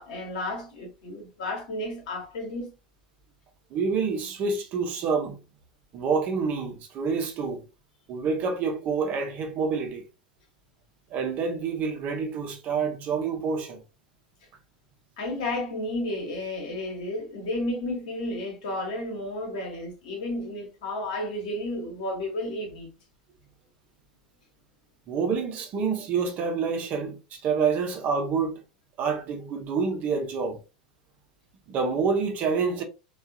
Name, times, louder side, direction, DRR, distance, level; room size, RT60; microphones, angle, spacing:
voice 1, 0.0-2.7 15.2-22.9, left 1 dB, 60° left, 1.2 m, -32 dB
voice 2, 3.7-5.4 5.9-7.7 8.1-10.1 11.1-13.8 25.1-28.6 29.0-30.6 31.7-32.8, right 5 dB, 40° right, 0.7 m, -27 dB
3.5 x 2.4 x 2.2 m
figure-of-eight pair, 80°, 4 cm